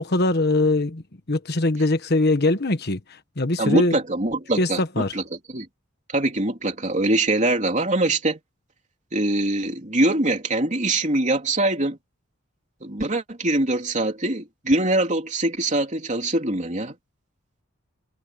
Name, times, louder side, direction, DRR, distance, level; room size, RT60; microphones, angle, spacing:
voice 1, 0.0-4.0 4.6-5.1, left 2 dB, 55° left, 1.4 m, -22 dB
voice 2, 3.6-4.8 5.1-5.2 5.5-5.7 6.1-8.4 9.1-12.0 12.8-16.9, right 2 dB, 35° right, 3.2 m, -23 dB
head